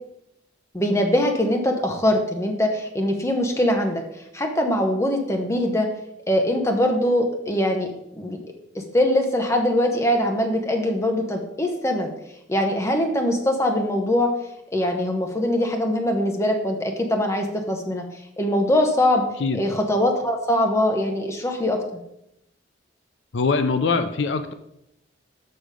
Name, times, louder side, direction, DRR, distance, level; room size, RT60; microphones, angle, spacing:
voice 1, 0.7-4.0 4.3-5.9 6.3-8.4 8.7-12.1 12.5-14.3 14.7-18.0 18.4-19.3 19.5-21.8, left 1 dB, 15° left, 3 dB, 1.0 m, -22 dB
voice 2, 23.3-24.5, left 4 dB, 70° left, 9 dB, 0.5 m, -22 dB
6.6 x 6.1 x 5.1 m, 0.81 s
head